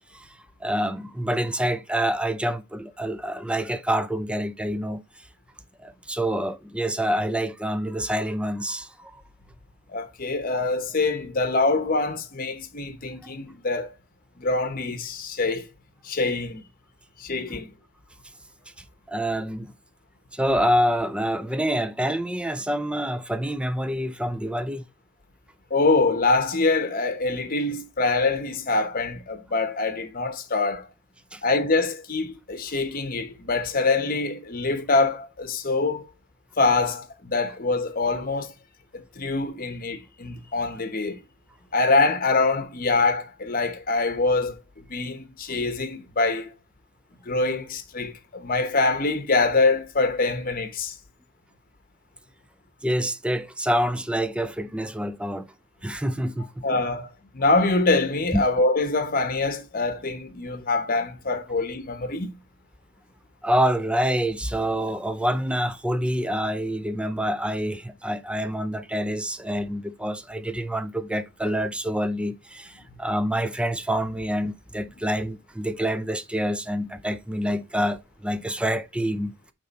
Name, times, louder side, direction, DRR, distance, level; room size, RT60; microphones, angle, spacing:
voice 1, 0.1-5.3 5.8-9.1 19.1-19.7 20.3-24.8 31.3-31.4 52.8-55.5 55.8-56.8 58.3-58.4 63.4-79.5, equal, 5° right, 0.5 m, -27 dB
voice 2, 9.9-13.9 14.4-15.6 16.0-16.6 17.2-17.7 25.7-30.9 31.4-36.0 36.6-38.5 38.9-41.2 41.7-44.6 44.9-46.5 47.2-51.0 56.6-62.4, left 3 dB, 40° left, 0.9 m, -24 dB
8.9 x 3.5 x 4.1 m
head